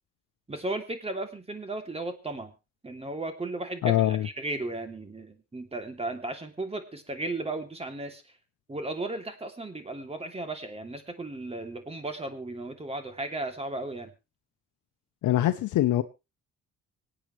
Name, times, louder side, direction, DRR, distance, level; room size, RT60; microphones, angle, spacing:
voice 1, 0.5-2.5 2.8-8.2 8.7-14.1, right 2 dB, 20° right, 2.9 m, -35 dB
voice 2, 3.8-4.3 15.2-16.0, left 13 dB, 80° left, 0.9 m, -23 dB
25.5 x 8.8 x 3.2 m
cardioid pair, 90°, 30 cm